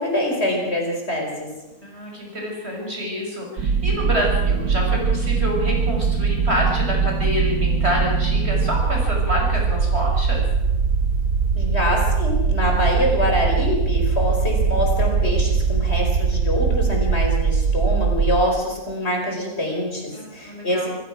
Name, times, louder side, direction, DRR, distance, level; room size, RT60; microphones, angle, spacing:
voice 1, 0.0-1.5 11.6-20.9, left 1 dB, 45° left, 1 dB, 5.2 m, -24 dB
voice 2, 1.8-10.5 20.1-20.9, equal, 45° right, 0 dB, 6.1 m, -27 dB
sound 1, 3.6-18.4, right 5 dB, 90° right, 1.6 m, -21 dB
27.0 x 15.5 x 6.2 m, 1.0 s
omnidirectional pair, 1.5 m